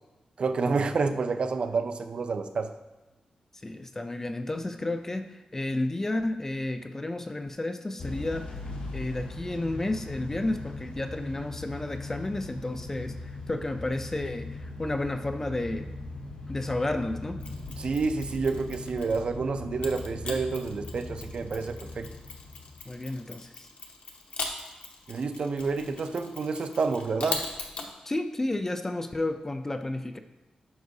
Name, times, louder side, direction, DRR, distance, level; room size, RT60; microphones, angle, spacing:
voice 1, 0.4-2.7 17.8-22.1 25.1-27.5, right 4 dB, 50° right, 8 dB, 0.4 m, -29 dB
voice 2, 3.6-8.6 8.9-15.9 16.5-17.5 22.9-23.7 28.0-30.2, left 2 dB, 20° left, 8 dB, 0.4 m, -32 dB
Motor vehicle (road) / Engine starting / Accelerating revving vroom, 8.0-23.0, left 2 dB, 80° left, 1.5 m, -40 dB
Mechanisms, 17.4-19.3 19.8-27.9, left 3 dB, 65° left, 0.9 m, -40 dB
9.5 x 6.0 x 2.7 m, 1.1 s
wide cardioid pair, 155°, 2 cm